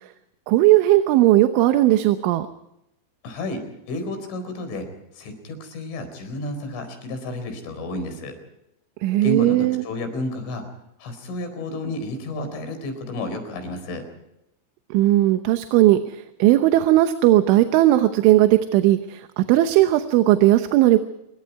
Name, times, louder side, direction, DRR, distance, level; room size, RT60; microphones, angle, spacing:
voice 1, 0.5-2.5 9.0-9.8 14.9-21.0, right 15 dB, 85° right, 8 dB, 3.4 m, -17 dB
voice 2, 3.2-3.6 3.9-4.9 5.1-8.3 9.2-10.6 11.0-14.0, left 2 dB, 85° left, 7 dB, 6.8 m, -31 dB
26.5 x 22.5 x 4.7 m, 0.85 s
omnidirectional pair, 5.4 m